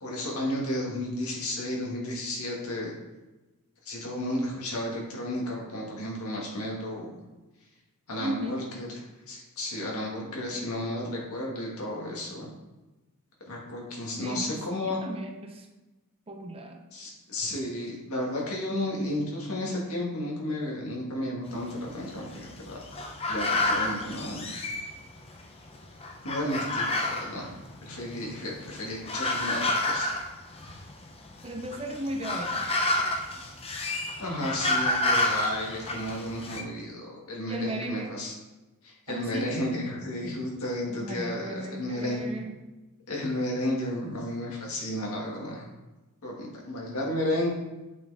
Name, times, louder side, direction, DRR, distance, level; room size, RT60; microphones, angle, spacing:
voice 1, 0.0-2.9 3.9-7.2 8.1-8.9 9.3-12.5 13.5-15.0 16.9-22.7 23.3-24.5 26.2-27.5 27.8-30.1 34.2-38.3 38.8-42.2 43.1-45.7 46.2-47.5, left 1 dB, 70° left, -2 dB, 1.8 m, -33 dB
voice 2, 8.2-8.7 14.2-15.7 16.3-16.8 31.4-32.7 37.5-38.2 39.1-39.6 40.9-42.5, right 1 dB, 25° right, 4 dB, 0.6 m, -36 dB
sound 1, 21.5-25.4 25.7-36.6, left 2 dB, 25° left, 0.6 m, -30 dB
8.2 x 4.4 x 3.5 m, 1.1 s
head